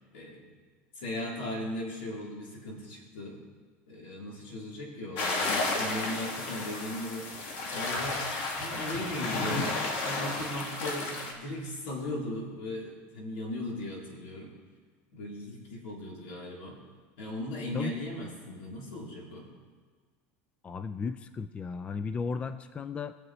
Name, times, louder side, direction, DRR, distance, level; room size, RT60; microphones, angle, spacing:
voice 1, 0.1-0.5 0.9-3.4 3.9-8.3 8.6-14.5 15.1-16.8 17.2-19.5, left 1 dB, 85° left, -3 dB, 3.4 m, -38 dB
sound 1, 5.2-11.3, left 3 dB, 65° left, 2.0 m, -32 dB
voice 2, 20.6-23.1, left 5 dB, 20° left, 12 dB, 0.4 m, -35 dB
21.0 x 7.3 x 3.1 m, 1.5 s
supercardioid pair, 145°, 6 cm